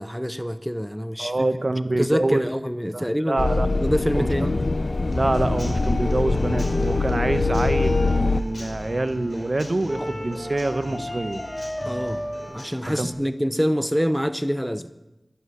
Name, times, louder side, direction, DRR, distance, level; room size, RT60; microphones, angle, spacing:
voice 1, 0.0-1.5 2.0-3.4 3.8-4.5 11.9-14.9, equal, ahead, 0.8 m, -26 dB
voice 2, 1.2-2.5 2.9-3.7 4.1-4.6 5.1-11.4 12.9-13.1, right 2 dB, 55° right, 1.0 m, -26 dB
sound 1, 3.4-8.4, left 3 dB, 70° left, 0.5 m, -23 dB
sound 2, 3.7-12.4, left 1 dB, 25° left, 7.6 m, -32 dB
Human voice / Acoustic guitar / Drum, 5.1-13.1, left 1 dB, 50° left, 4.7 m, -40 dB
12.0 x 11.0 x 9.9 m
wide cardioid pair, 40°, 0 cm